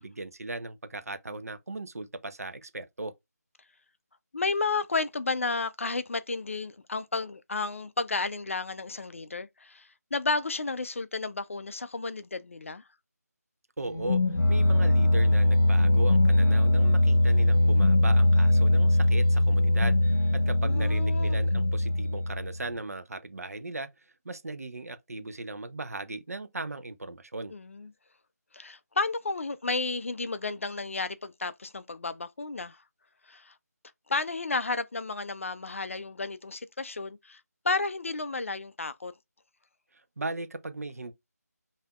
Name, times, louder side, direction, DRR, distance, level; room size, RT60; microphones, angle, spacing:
voice 1, 0.0-3.1 13.8-14.2 14.5-27.5 39.9-41.1, right 2 dB, 60° right, 0.7 m, -37 dB
voice 2, 4.3-12.8 20.6-21.4 27.5-27.9 28.5-32.8 33.3-33.5 34.1-39.1, left 3 dB, 50° left, 0.4 m, -32 dB
sound 1, 13.9-22.7, left 1 dB, 75° left, 0.9 m, -22 dB
5.6 x 2.7 x 2.3 m
figure-of-eight pair, 160°, 9 cm